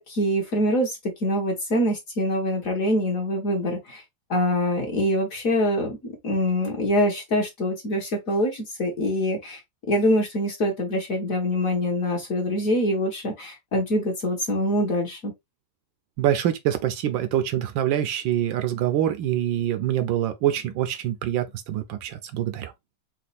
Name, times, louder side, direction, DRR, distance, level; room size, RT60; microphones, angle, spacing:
voice 1, 0.2-4.0 4.3-9.6 9.9-15.3, equal, 50° left, 1.3 m, -24 dB
voice 2, 16.2-22.7, right 11 dB, 75° right, 1.3 m, -25 dB
4.3 x 2.4 x 4.0 m
omnidirectional pair, 2.2 m